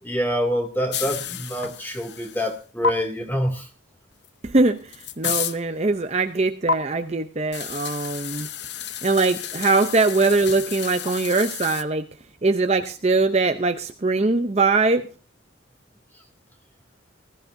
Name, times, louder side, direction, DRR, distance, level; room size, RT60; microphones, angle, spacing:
voice 1, 0.0-3.7, equal, 10° left, 3 dB, 2.4 m, -26 dB
sound 1, 0.9-2.6 2.8-2.9 4.2-4.3 4.7-5.6 6.7-6.8 7.5-11.8, left 7 dB, 55° left, 0.8 m, -30 dB
voice 2, 4.4-8.5 9.0-12.1 12.4-15.1, right 3 dB, 30° right, 7 dB, 0.6 m, -22 dB
20.0 x 14.0 x 2.7 m, 0.33 s
head